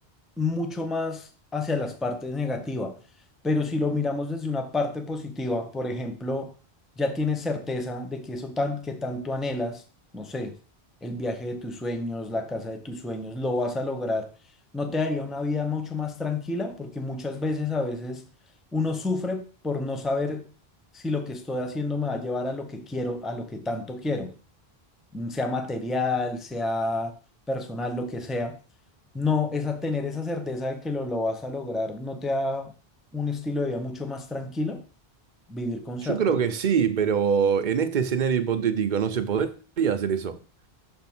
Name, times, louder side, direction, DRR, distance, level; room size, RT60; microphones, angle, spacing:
voice 1, 0.4-3.0 3.4-6.5 7.0-9.8 10.1-10.6 11.0-14.3 14.7-18.2 18.7-20.5 20.9-24.3 25.1-27.1 27.5-28.6 29.1-32.7 33.1-34.8 35.5-36.2, left 2 dB, ahead, 0.5 m, -29 dB
voice 2, 36.0-39.5 39.8-40.4, right 7 dB, 50° right, 0.8 m, -24 dB
6.4 x 3.5 x 5.9 m
omnidirectional pair, 1.1 m